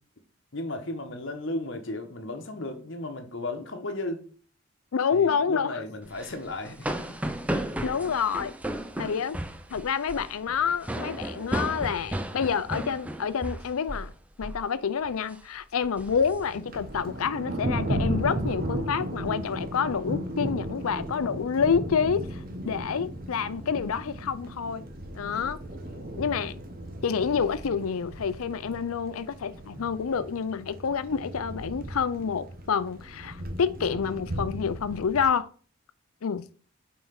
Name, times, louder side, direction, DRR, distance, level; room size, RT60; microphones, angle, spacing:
voice 1, 0.5-4.3 5.1-7.2 25.9-26.3, left 2 dB, 55° left, 1.1 m, -35 dB
voice 2, 4.9-5.7 7.8-8.5 9.0-9.4 9.7-14.1 14.4-22.4 22.6-24.8 25.1-25.6 26.2-26.6 27.0-35.5 36.2-36.5, left 6 dB, 80° left, 0.5 m, -28 dB
sound 1, 6.1-14.1 14.4-14.7 15.1-15.4 15.8-17.0, right 1 dB, 5° right, 0.4 m, -34 dB
Thunder, 16.0-35.3, right 1 dB, 40° right, 1.1 m, -35 dB
5.6 x 4.4 x 5.8 m
head